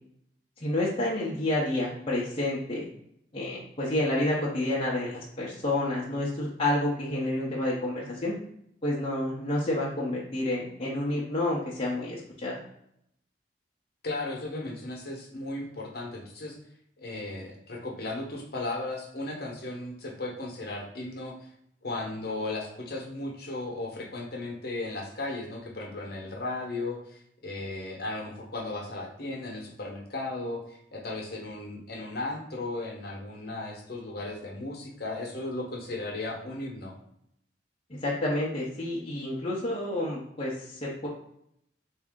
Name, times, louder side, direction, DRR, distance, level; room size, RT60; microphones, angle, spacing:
voice 1, 0.6-2.9 3.3-8.3 8.8-12.6 38.0-41.1, left 1 dB, 30° left, -5 dB, 0.7 m, -29 dB
voice 2, 14.0-16.6 17.0-21.3 21.8-36.9, left 2 dB, 60° left, -1 dB, 0.9 m, -36 dB
3.5 x 2.7 x 3.6 m, 0.74 s
head